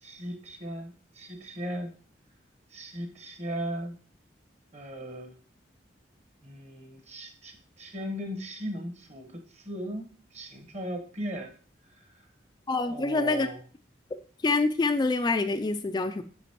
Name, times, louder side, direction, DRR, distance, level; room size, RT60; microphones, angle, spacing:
voice 1, 0.0-1.9 2.7-4.0 4.7-5.4 6.4-10.0 10.3-11.5 12.9-13.6, equal, 35° right, 5 dB, 1.1 m, -37 dB
voice 2, 12.7-13.5 14.1-16.2, left 3 dB, 20° left, 8 dB, 0.3 m, -26 dB
8.1 x 6.4 x 2.9 m, 0.43 s
head